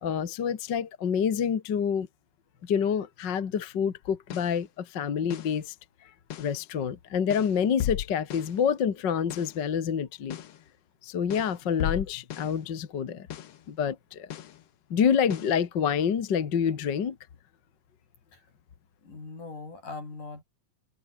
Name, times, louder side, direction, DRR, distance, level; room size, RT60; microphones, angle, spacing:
voice 1, 0.0-2.1 2.6-5.7 6.4-10.4 11.0-13.3 13.7-14.3 14.9-17.2, left 7 dB, 40° left, 1.8 m, -27 dB
sound 1, 4.1-4.6 5.3-5.6 6.3-6.6 7.3-8.6 9.3-9.6 10.3-10.6 11.3-12.6 13.3-13.6 14.3-14.6 15.3-15.6, left 11 dB, 60° left, 2.0 m, -36 dB
voice 2, 19.0-20.4, left 3 dB, 75° left, 9.7 m, -40 dB
omnidirectional pair, 3.7 m